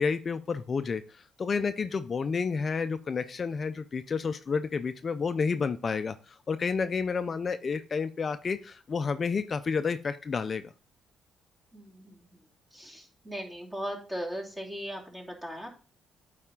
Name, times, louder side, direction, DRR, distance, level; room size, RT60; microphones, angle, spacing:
voice 1, 0.0-10.6, left 5 dB, 40° left, 10 dB, 0.4 m, -30 dB
voice 2, 11.7-12.3 12.7-15.7, equal, 20° right, -2 dB, 2.6 m, -38 dB
8.9 x 4.1 x 3.6 m, 0.38 s
cardioid pair, 90°, 0 cm